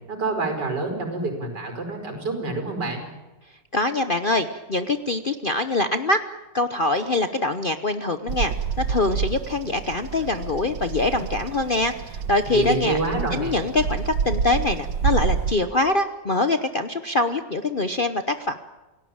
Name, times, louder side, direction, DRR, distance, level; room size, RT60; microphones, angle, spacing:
voice 1, 0.1-3.0 12.5-13.5, right 3 dB, 70° right, 5 dB, 5.8 m, -27 dB
voice 2, 3.7-6.2 6.5-13.0 13.3-18.6, left 2 dB, 40° left, 9 dB, 0.8 m, -24 dB
Bird vocalization bird call bird song, 8.3-15.5, right 6 dB, 85° right, 1.8 m, -28 dB
28.5 x 17.5 x 8.8 m, 1.1 s
omnidirectional pair, 1.9 m